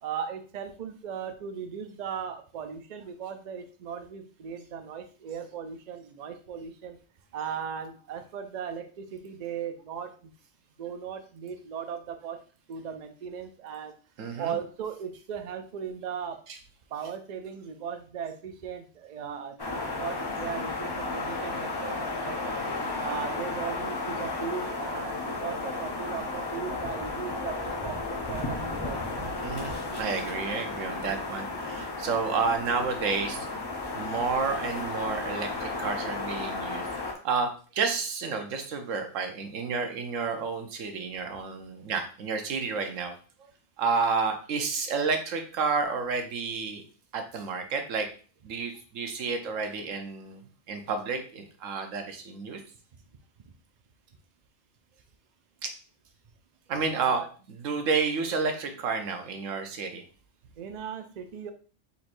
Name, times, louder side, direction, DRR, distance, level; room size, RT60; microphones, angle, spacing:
voice 1, 0.0-7.0 7.3-10.3 10.8-12.4 12.7-13.9 14.4-16.4 16.9-22.6 23.0-29.3 53.5-53.6 56.9-57.3 60.6-61.5, right 7 dB, 60° right, 7 dB, 0.4 m, -37 dB
voice 2, 14.2-14.5 29.4-33.5 33.9-43.1 43.8-46.8 47.1-48.1 48.4-52.6 55.6-55.7 56.7-57.2 57.5-60.0, right 5 dB, 85° right, 6 dB, 1.1 m, -30 dB
sound 1, 19.6-37.1, left 3 dB, 25° left, 0.6 m, -33 dB
4.6 x 4.1 x 2.5 m, 0.38 s
omnidirectional pair, 1.3 m